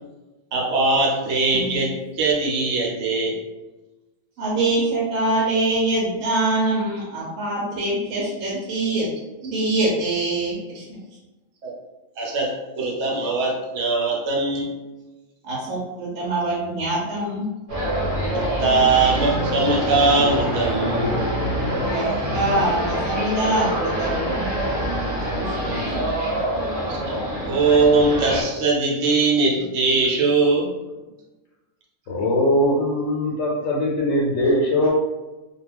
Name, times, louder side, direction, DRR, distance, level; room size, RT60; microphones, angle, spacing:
voice 1, 0.5-3.4 11.6-11.7 12.2-14.7 18.3-21.1 26.9-27.1 27.4-30.7, right 3 dB, 65° right, -2 dB, 1.0 m, -21 dB
voice 2, 4.4-9.1 9.4-11.0 15.4-17.5 21.9-22.1 22.3-24.5 25.4-26.1, right 2 dB, 90° right, -4 dB, 1.0 m, -24 dB
sound 1, 17.7-28.4, equal, 35° right, 0.7 m, -25 dB
voice 3, 32.1-34.9, left 1 dB, 85° left, -3 dB, 1.0 m, -21 dB
2.4 x 2.2 x 3.3 m, 1.1 s
omnidirectional pair, 1.4 m